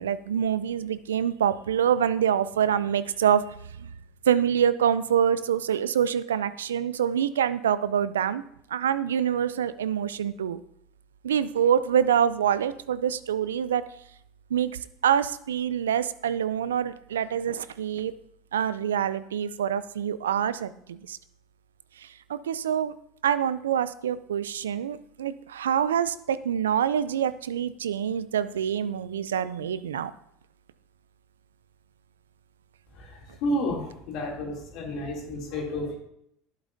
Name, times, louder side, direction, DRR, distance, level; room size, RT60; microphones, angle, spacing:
voice 1, 0.0-3.9 4.3-8.4 8.7-10.6 11.2-13.8 14.5-14.7 15.0-18.1 18.5-21.2 22.0-22.9 23.2-30.1, right 9 dB, 85° right, 15 dB, 0.4 m, -26 dB
voice 2, 32.9-36.0, left 1 dB, 60° left, -1 dB, 2.7 m, -31 dB
11.0 x 8.3 x 2.6 m, 0.73 s
hypercardioid pair, 80°, 0 cm